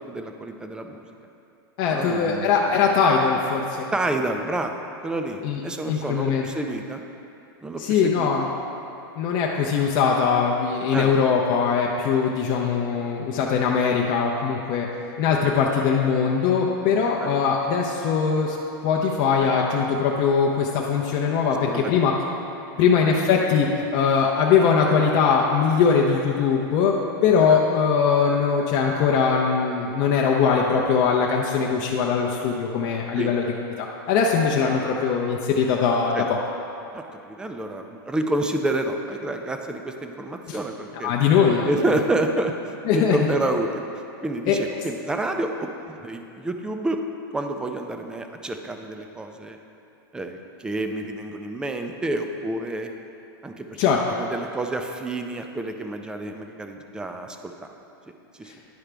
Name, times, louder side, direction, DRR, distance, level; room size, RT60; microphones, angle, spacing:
voice 1, 0.1-1.0 1.9-2.8 3.9-7.0 7.6-8.5 10.9-11.1 17.2-17.3 21.7-22.0 22.7-22.9 27.5-27.6 33.2-33.3 36.1-36.3 36.9-41.1 41.6-42.5 42.9-43.9 44.2-47.0 47.3-49.6 50.1-52.9 53.4-53.8 54.2-57.7 58.4-58.5, right 2 dB, 5° right, 5 dB, 0.4 m, -29 dB
voice 2, 1.8-3.9 5.4-5.6 5.9-6.5 7.8-8.5 9.2-14.9 15.2-18.6 18.8-22.1 22.8-27.0 27.2-33.4 33.8-36.4 40.5-40.6 41.0-41.7 42.9-43.2 44.5-44.6 53.8-54.0 58.5-58.6, left 6 dB, 40° left, -2 dB, 0.6 m, -21 dB
10.5 x 4.8 x 3.4 m, 2.7 s
supercardioid pair, 145°, 12 cm